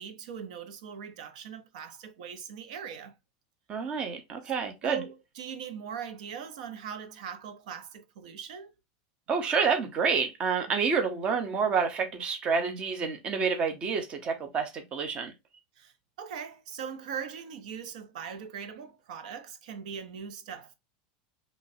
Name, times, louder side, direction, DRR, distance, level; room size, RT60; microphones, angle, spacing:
voice 1, 0.0-3.1 4.8-8.7 15.8-20.8, right 7 dB, 85° right, 0.8 m, -40 dB
voice 2, 3.7-5.0 9.3-15.3, right 5 dB, 25° right, 0.8 m, -28 dB
5.3 x 3.1 x 2.7 m
supercardioid pair, 165°, 4 cm